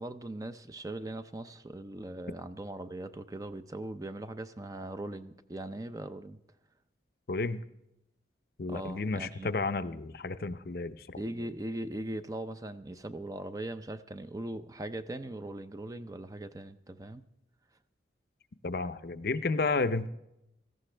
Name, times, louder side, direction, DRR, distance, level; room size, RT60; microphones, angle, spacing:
voice 1, 0.0-6.4 8.7-9.6 11.2-17.2, right 1 dB, 20° right, 10 dB, 0.5 m, -40 dB
voice 2, 7.3-7.6 8.6-11.2 18.6-20.1, left 3 dB, 55° left, 11 dB, 0.6 m, -32 dB
17.5 x 14.0 x 3.3 m, 0.85 s
head